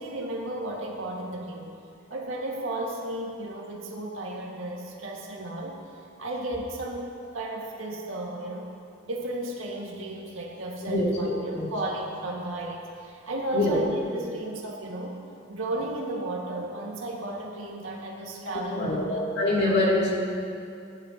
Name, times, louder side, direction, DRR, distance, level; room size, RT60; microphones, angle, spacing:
voice 1, 0.0-1.7 2.1-5.8 6.2-8.7 9.1-15.2 15.5-19.2, right 1 dB, 75° right, -2 dB, 1.9 m, -34 dB
voice 2, 10.8-11.7 13.5-13.8 18.7-20.2, left 1 dB, 55° left, -5 dB, 2.8 m, -25 dB
18.0 x 11.0 x 3.0 m, 2.5 s
head